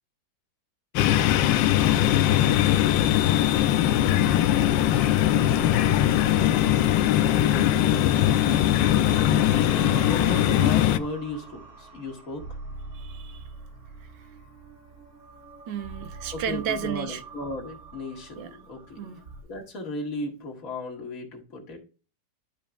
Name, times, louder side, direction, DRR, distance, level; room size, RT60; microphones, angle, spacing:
sound 1, 1.0-11.0, left 12 dB, 85° left, 1.3 m, -21 dB
sound 2, 2.9-19.4, right 4 dB, 50° right, 3.0 m, -42 dB
voice 1, 9.8-12.5 16.3-19.1 19.5-21.8, left 2 dB, 50° left, 2.2 m, -35 dB
voice 2, 12.9-13.5 15.7-17.2 18.4-18.5 19.0-19.2, right 9 dB, 80° right, 1.5 m, -33 dB
11.0 x 5.1 x 2.3 m
omnidirectional pair, 2.0 m